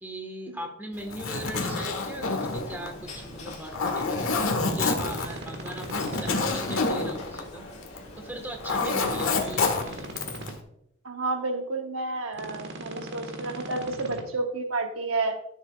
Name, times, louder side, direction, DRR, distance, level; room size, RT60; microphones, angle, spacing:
voice 1, 0.0-7.7 8.2-10.3, right 1 dB, 10° right, 3 dB, 1.4 m, -39 dB
Zipper (clothing), 1.0-8.1 8.4-10.5, left 3 dB, 85° left, 1.4 m, -28 dB
sound 1, 2.4-10.0, left 1 dB, 35° left, 2.1 m, -45 dB
sound 2, 5.0-6.8 8.6-10.5 12.3-14.2, right 1 dB, 55° right, 1.5 m, -39 dB
voice 2, 11.0-15.4, right 3 dB, 75° right, 5 dB, 1.1 m, -30 dB
13.5 x 7.3 x 2.4 m, 0.77 s
head